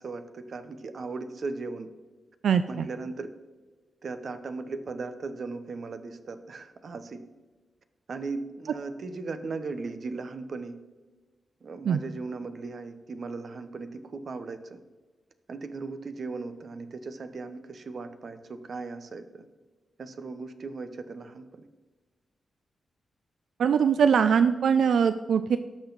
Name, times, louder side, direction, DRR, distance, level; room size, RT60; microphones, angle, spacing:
voice 1, 0.0-1.9 2.7-3.3 4.0-7.2 8.1-10.8 11.6-14.8 15.5-19.5 20.0-21.7, right 3 dB, 45° right, 10 dB, 0.7 m, -37 dB
voice 2, 2.4-2.9 11.8-12.0 23.6-25.6, right 7 dB, 75° right, 11 dB, 0.4 m, -22 dB
17.5 x 6.3 x 3.9 m, 1.3 s
wide cardioid pair, 170°, 0 cm